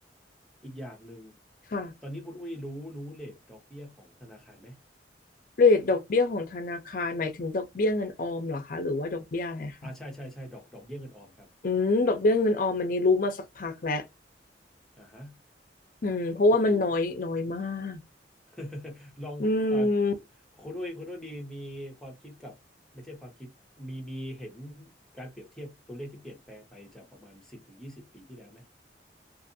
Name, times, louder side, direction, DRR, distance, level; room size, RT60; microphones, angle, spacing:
voice 1, 0.6-1.4 2.0-4.8 9.8-11.5 15.0-15.4 16.5-16.9 18.5-19.9 20.6-22.6 22.9-28.6, equal, 5° left, 1.0 m, -42 dB
voice 2, 5.6-9.9 11.6-14.0 16.0-18.0 19.4-20.1, left 3 dB, 50° left, 0.5 m, -26 dB
2.6 x 2.5 x 2.6 m
head